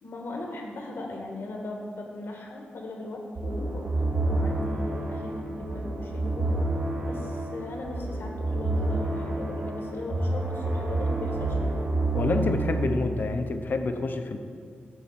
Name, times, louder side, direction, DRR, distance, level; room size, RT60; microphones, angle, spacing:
voice 1, 0.0-3.9 4.3-6.6 7.0-11.8, left 2 dB, 75° left, 1 dB, 1.4 m, -38 dB
sound 1, 3.4-12.9, right 2 dB, 65° right, 2.0 m, -29 dB
voice 2, 12.1-14.4, left 3 dB, 55° left, 7 dB, 0.6 m, -27 dB
11.0 x 4.1 x 7.3 m, 2.1 s
wide cardioid pair, 125°, 4 cm